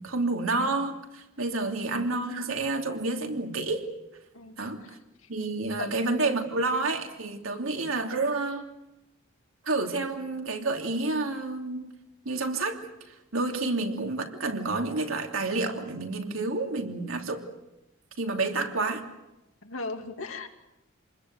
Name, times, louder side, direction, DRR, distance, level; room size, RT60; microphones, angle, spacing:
voice 1, 0.0-3.9 4.6-4.8 5.3-8.7 9.6-11.9 12.2-12.8 13.1-17.4 18.2-19.0, right 3 dB, 85° right, 3 dB, 3.1 m, -29 dB
voice 2, 19.6-20.5, left 3 dB, 85° left, 5 dB, 2.8 m, -37 dB
27.5 x 21.0 x 8.0 m, 0.93 s
head